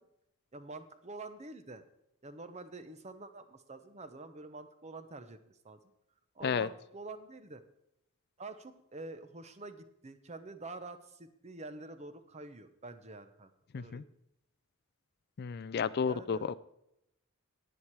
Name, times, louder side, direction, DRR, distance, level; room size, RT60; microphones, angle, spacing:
voice 1, 0.5-1.8 2.2-5.8 6.3-7.6 8.4-14.0 16.0-16.4, right 3 dB, 30° right, 10 dB, 0.8 m, -47 dB
voice 2, 15.4-16.6, left 6 dB, 45° left, 15 dB, 0.3 m, -32 dB
10.5 x 10.0 x 4.7 m, 0.81 s
head